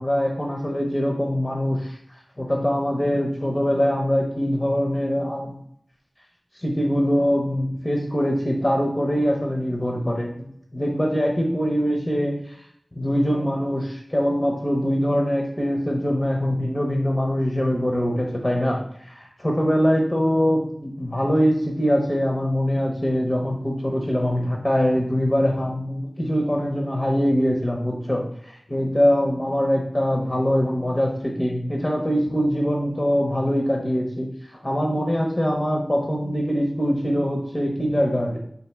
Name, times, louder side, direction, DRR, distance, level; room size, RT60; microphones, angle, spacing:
voice 1, 0.0-2.0 2.4-5.6 6.6-12.5 13.0-38.4, equal, 30° left, 0 dB, 0.6 m, -23 dB
4.0 x 2.5 x 3.3 m, 0.70 s
wide cardioid pair, 50°, 0 cm